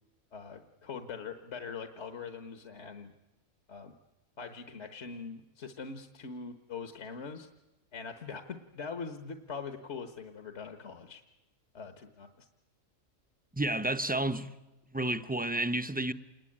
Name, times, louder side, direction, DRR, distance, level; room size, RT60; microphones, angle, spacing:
voice 1, 0.3-3.1 3.7-3.9 4.4-7.5 7.9-11.2 11.7-12.5, left 5 dB, 60° left, 1.6 m, -42 dB
voice 2, 13.5-14.5 14.9-16.1, right 1 dB, 10° right, 0.7 m, -31 dB
28.0 x 20.5 x 8.7 m
omnidirectional pair, 1.4 m